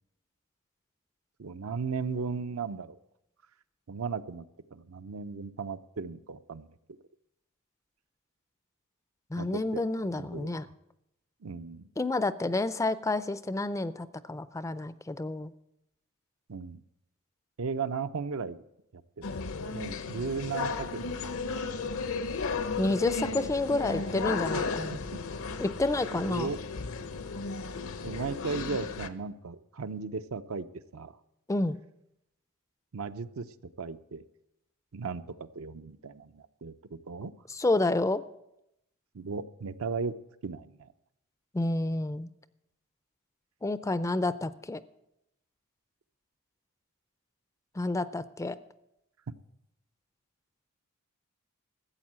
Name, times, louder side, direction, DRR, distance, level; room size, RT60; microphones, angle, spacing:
voice 1, 1.4-3.0 3.9-4.4 4.7-6.7 9.4-9.8 10.2-10.5 11.4-11.9 16.5-16.8 17.6-18.6 18.9-19.3 19.7-21.2 21.6-21.7 24.6-25.2 26.1-26.6 28.0-30.7 30.9-31.1 32.9-33.4 33.8-34.2 34.9-35.2 35.5-36.7 37.1-37.3 39.1-40.1 40.4-40.9, right 5 dB, 70° right, 11 dB, 0.6 m, -36 dB
voice 2, 9.3-10.7 12.0-15.5 22.8-25.0 25.6-26.5 31.5-31.8 37.5-38.2 41.5-42.3 43.6-44.8 47.8-48.6, left 2 dB, 15° left, 15 dB, 0.4 m, -29 dB
sound 1, 19.2-29.1, left 4 dB, 70° left, 0.8 m, -34 dB
14.0 x 8.1 x 7.4 m, 0.83 s
head